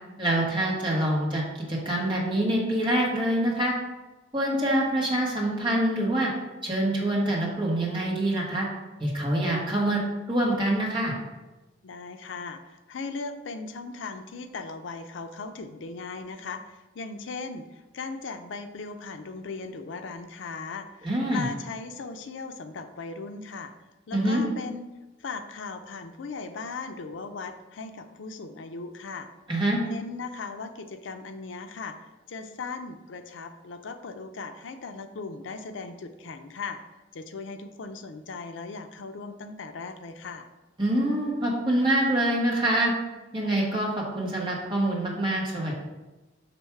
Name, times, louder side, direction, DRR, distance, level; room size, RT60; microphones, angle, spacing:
voice 1, 0.2-1.4 1.7-3.7 4.3-6.3 6.6-8.7 9.0-10.0 10.3-11.1 21.0-21.5 24.1-24.4 29.5-29.8 40.8-42.9 43.3-45.8, right 1 dB, 25° right, -3 dB, 1.4 m, -25 dB
voice 2, 11.8-23.7 24.1-24.9 25.2-29.3 29.8-36.8 37.1-40.5, left 4 dB, 75° left, 8 dB, 0.5 m, -38 dB
5.9 x 3.1 x 5.7 m, 1.1 s
head